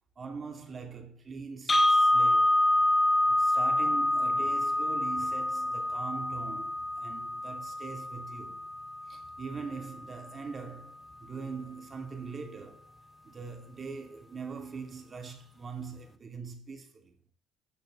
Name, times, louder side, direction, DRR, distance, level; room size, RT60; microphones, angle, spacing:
voice 1, 0.2-2.7 3.3-8.6 9.1-12.9 13.2-17.1, right 5 dB, 25° right, 2.6 m, -42 dB
sound 1, 1.7-9.7, left 1 dB, 15° left, 1.3 m, -27 dB
12.5 x 6.6 x 7.3 m
cardioid pair, 160°, 0 cm